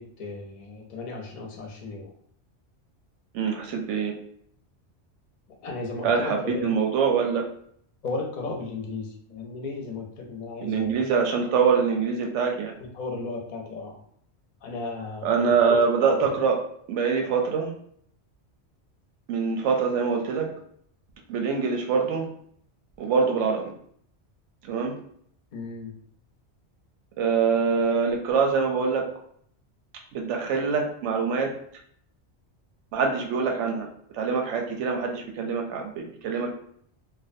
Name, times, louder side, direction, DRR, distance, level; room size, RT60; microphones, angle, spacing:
voice 1, 0.0-2.2 5.6-6.7 8.0-11.2 12.8-14.0 14.6-15.8 16.2-16.4 25.5-26.0 36.3-36.4, left 3 dB, 50° left, 0 dB, 0.6 m, -35 dB
voice 2, 3.3-4.1 6.0-7.4 10.6-12.7 15.2-16.6 16.9-17.7 19.3-20.6 21.3-22.3 23.0-23.7 24.6-25.0 27.2-29.1 30.1-31.5 32.9-33.9 34.1-36.5, right 5 dB, 90° right, 2 dB, 0.9 m, -24 dB
2.5 x 2.1 x 2.5 m, 0.64 s
omnidirectional pair, 1.2 m